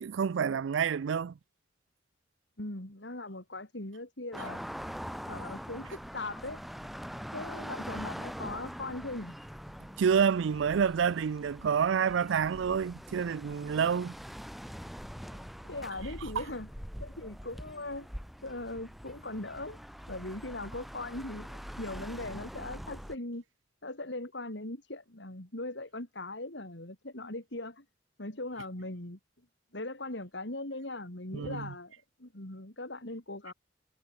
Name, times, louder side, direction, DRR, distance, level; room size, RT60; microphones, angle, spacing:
voice 1, 0.0-1.3 10.0-14.2 31.3-31.7, right 7 dB, 80° right, 0.4 m, -28 dB
voice 2, 2.6-4.6 5.3-6.6 7.3-9.4 15.3-16.7 17.0-18.1 18.4-19.8 20.1-23.4 23.8-27.9 28.2-29.2 29.7-31.9 32.2-33.5, left 2 dB, 65° left, 3.6 m, -40 dB
sound 1, 4.3-23.2, equal, ahead, 1.6 m, -43 dB
head